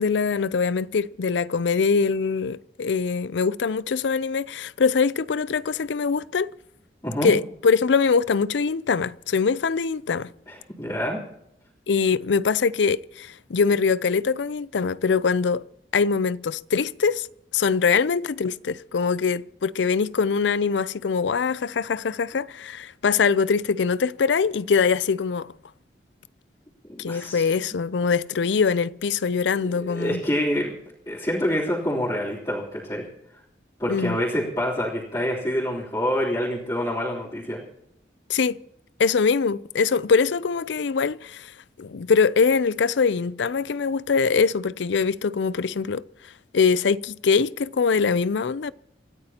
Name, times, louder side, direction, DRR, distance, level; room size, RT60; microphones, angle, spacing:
voice 1, 0.0-6.5 7.2-10.3 11.9-15.6 15.9-17.3 17.5-25.5 27.0-30.2 33.9-34.2 38.3-38.6 39.0-41.5 41.8-46.0 46.5-48.7, left 5 dB, 85° left, 0.5 m, -23 dB
voice 2, 10.5-11.2 27.0-27.5 29.6-30.7 31.0-33.1 33.8-37.6, equal, 20° left, 3.4 m, -27 dB
29.0 x 14.0 x 2.9 m
head